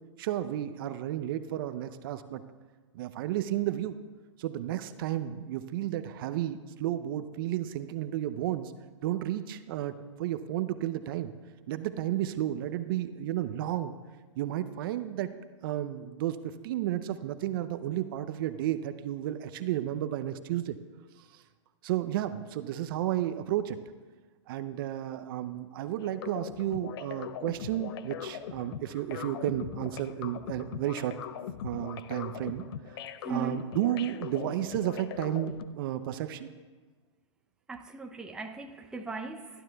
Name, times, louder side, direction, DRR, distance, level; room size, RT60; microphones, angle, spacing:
voice 1, 0.2-2.4 2.9-3.9 4.4-8.7 9.0-11.3 11.7-13.9 14.4-15.3 15.6-20.8 21.3-21.4 21.8-23.8 24.5-31.1 31.6-32.6 33.3-36.5, right 12 dB, 45° right, 0.6 m, -32 dB
sound 1, 26.0-35.7, left 10 dB, 50° left, 0.5 m, -41 dB
voice 2, 33.2-33.7 37.7-39.6, right 4 dB, 5° right, 0.6 m, -38 dB
19.0 x 12.0 x 2.3 m
hypercardioid pair, 120°, 16 cm